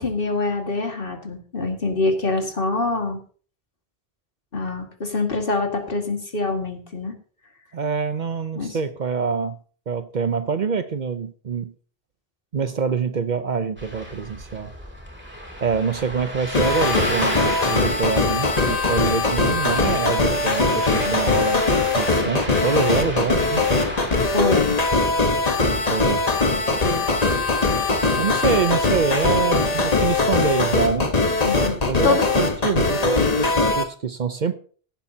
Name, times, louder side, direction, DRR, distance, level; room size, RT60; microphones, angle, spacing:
voice 1, 0.0-3.2 4.5-7.2 8.6-8.8 21.0-21.2 24.3-24.8 31.4-32.3, left 3 dB, 60° left, 3 dB, 2.2 m, -25 dB
voice 2, 7.7-9.6 9.9-11.7 12.5-14.7 15.6-21.6 21.9-23.6 25.9-26.3 28.2-31.1 31.9-34.6, right 5 dB, 50° right, 11 dB, 0.8 m, -25 dB
Ocean, 13.8-25.1, equal, 10° right, 2.8 m, -33 dB
sound 1, 16.5-33.8, left 3 dB, 40° left, 1.3 m, -21 dB
16.0 x 11.5 x 2.8 m, 0.43 s
omnidirectional pair, 1.0 m